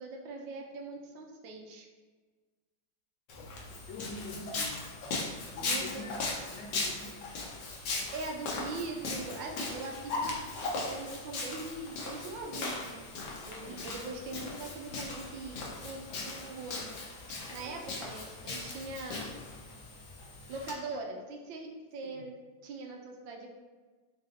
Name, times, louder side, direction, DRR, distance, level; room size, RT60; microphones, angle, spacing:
voice 1, 0.0-1.9 5.6-6.0 8.1-10.4 10.6-13.0 13.5-16.0 16.2-16.9 17.5-19.3 20.5-22.4 22.6-23.5, right 3 dB, 85° right, 1 dB, 1.4 m, -41 dB
Walk footsteps, 3.3-20.7, left 3 dB, 65° left, 1.3 m, -38 dB
voice 2, 3.4-4.9 5.5-7.2 13.6-14.0 22.0-22.3, left 2 dB, 85° left, 1 dB, 1.4 m, -46 dB
3.9 x 2.5 x 4.0 m, 1.4 s
omnidirectional pair, 2.1 m